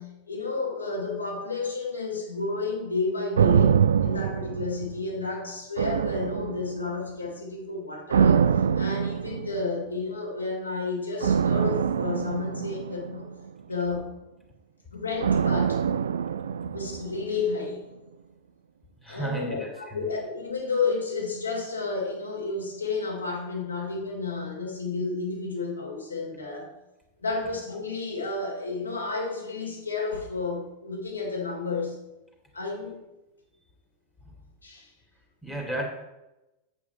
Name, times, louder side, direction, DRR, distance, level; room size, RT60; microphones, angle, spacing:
voice 1, 0.0-8.5 8.7-13.3 13.6-14.1 14.9-15.8 16.7-17.9 19.1-26.7 27.2-32.0 32.5-33.0 34.6-34.9, left 3 dB, 80° left, -1 dB, 2.8 m, -31 dB
sound 1, 3.4-5.3 5.8-7.0 8.1-9.8 11.2-13.6 15.2-17.4 17.7-17.8, right 7 dB, 65° right, 0.4 m, -24 dB
voice 2, 19.0-20.0 35.4-35.8, right 2 dB, 10° left, 0 dB, 2.4 m, -33 dB
9.3 x 8.3 x 4.6 m, 0.97 s
figure-of-eight pair, 90°, 0 cm